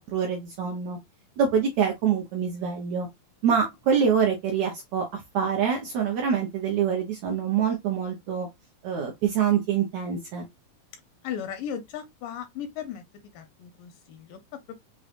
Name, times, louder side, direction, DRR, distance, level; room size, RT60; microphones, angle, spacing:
voice 1, 0.1-1.0 1.4-3.1 3.4-8.5 8.8-10.4, right 7 dB, 75° right, 1.7 m, -25 dB
voice 2, 11.2-14.8, left 8 dB, 80° left, 2.1 m, -37 dB
6.4 x 2.3 x 2.4 m
omnidirectional pair, 4.1 m